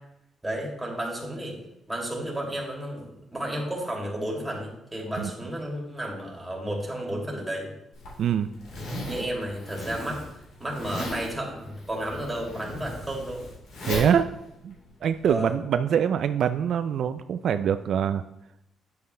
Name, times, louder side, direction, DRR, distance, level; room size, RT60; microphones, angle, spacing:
voice 1, 0.4-1.6 1.9-7.7 8.9-10.3 10.6-13.5 15.2-15.6, right 1 dB, 10° right, -1 dB, 2.6 m, -32 dB
Zipper (clothing), 7.9-15.3, left 1 dB, 80° left, 3.3 m, -37 dB
voice 2, 8.2-8.5 13.8-14.3 14.6-14.7 15.0-18.2, right 8 dB, 65° right, 9 dB, 0.3 m, -24 dB
9.4 x 6.9 x 3.3 m, 0.83 s
cardioid pair, 90°, 0 cm